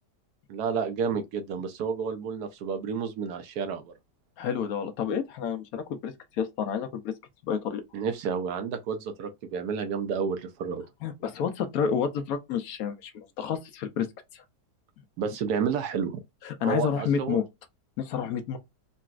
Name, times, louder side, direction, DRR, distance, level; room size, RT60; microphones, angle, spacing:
voice 1, 0.5-3.9 7.9-10.8 15.2-16.2 16.6-17.4, right 6 dB, 75° right, 1.0 m, -30 dB
voice 2, 4.4-7.1 7.4-7.8 11.0-14.1 14.3-14.4 16.4-17.4 18.0-18.6, left 7 dB, 70° left, 1.0 m, -29 dB
3.9 x 2.2 x 2.4 m
omnidirectional pair, 1.8 m